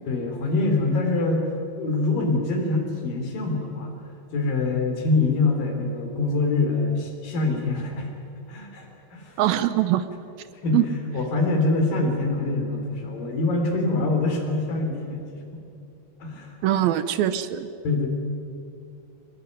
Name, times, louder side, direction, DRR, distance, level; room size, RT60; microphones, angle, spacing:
voice 1, 0.1-1.5 1.7-3.9 4.3-8.1 8.5-9.4 10.5-10.9 11.1-15.6 16.2-16.5 17.8-18.1, left 3 dB, 60° left, 3 dB, 5.3 m, -25 dB
voice 2, 9.4-10.1 10.7-10.8 16.6-17.7, right 12 dB, 75° right, 13 dB, 2.5 m, -22 dB
24.5 x 20.5 x 9.6 m, 2.6 s
omnidirectional pair, 4.5 m